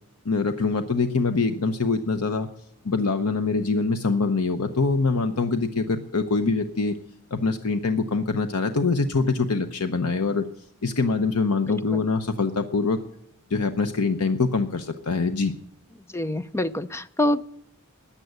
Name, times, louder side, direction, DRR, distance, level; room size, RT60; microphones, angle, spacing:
voice 1, 0.2-2.5 2.8-7.0 7.3-10.4 10.8-13.0 13.5-15.5, left 3 dB, 85° left, 8 dB, 0.9 m, -24 dB
voice 2, 16.1-17.4, left 1 dB, 10° left, 14 dB, 0.5 m, -25 dB
14.5 x 10.0 x 8.0 m, 0.72 s
head